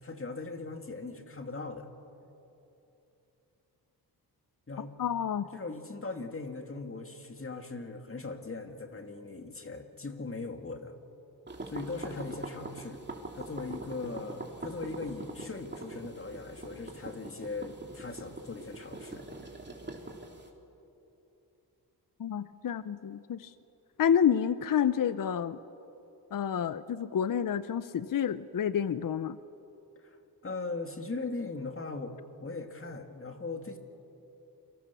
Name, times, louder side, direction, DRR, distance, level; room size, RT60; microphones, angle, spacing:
voice 1, 0.0-1.9 4.7-4.9 5.5-10.9 11.7-13.0 13.3-19.2 30.0-30.2 30.4-33.8, left 3 dB, 35° left, 5 dB, 2.3 m, -39 dB
voice 2, 5.0-5.5 22.2-23.5 24.0-25.6 26.3-29.4, left 8 dB, 55° left, 14 dB, 0.7 m, -29 dB
sound 1, 11.5-20.5, right 2 dB, 25° right, 3.1 m, -43 dB
29.0 x 24.0 x 7.0 m, 3.0 s
cardioid pair, 80°, 39 cm